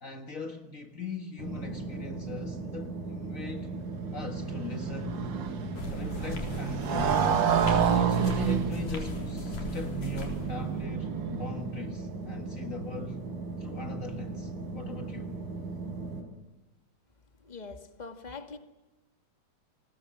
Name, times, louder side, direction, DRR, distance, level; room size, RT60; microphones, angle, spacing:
voice 1, 0.0-3.7 4.1-5.2 5.9-7.3 7.9-13.2 13.6-15.4, left 4 dB, 75° left, 0.7 m, -40 dB
sound 1, 1.4-16.2, right 3 dB, 60° right, 6.3 m, -38 dB
Motorcycle, 3.7-11.8, right 7 dB, 75° right, 1.0 m, -30 dB
sound 2, 5.8-10.9, left 2 dB, 60° left, 5.2 m, -39 dB
voice 2, 17.4-18.6, left 4 dB, 20° left, 1.1 m, -43 dB
29.5 x 20.5 x 7.6 m
omnidirectional pair, 4.2 m